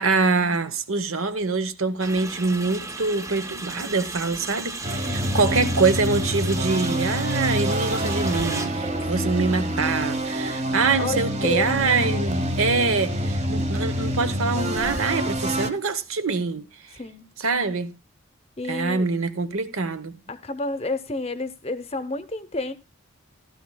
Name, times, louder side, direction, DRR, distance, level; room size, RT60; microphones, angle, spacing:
voice 1, 0.0-16.7 17.4-17.9 18.7-20.2, right 4 dB, 75° right, 1.0 m, -24 dB
sound 1, 2.0-11.9, right 3 dB, 15° right, 0.6 m, -37 dB
sound 2, 4.8-15.7, equal, 30° right, 1.1 m, -26 dB
voice 2, 5.0-5.6 9.0-9.7 11.0-12.3 16.9-17.3 18.6-19.1 20.3-22.7, left 2 dB, 30° left, 0.7 m, -31 dB
16.0 x 13.0 x 2.2 m
head